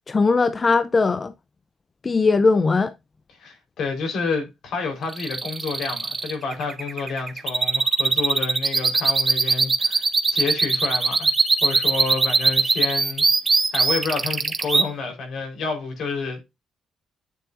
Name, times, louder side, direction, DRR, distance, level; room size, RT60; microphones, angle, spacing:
voice 1, 0.1-1.3 2.0-2.9, left 4 dB, 35° left, 0.6 m, -19 dB
voice 2, 3.4-11.3 11.6-16.4, left 4 dB, 65° left, 4.4 m, -29 dB
sound 1, 5.1-14.8, right 4 dB, 35° right, 1.7 m, -21 dB
9.3 x 7.4 x 2.7 m
hypercardioid pair, 50°, 0 cm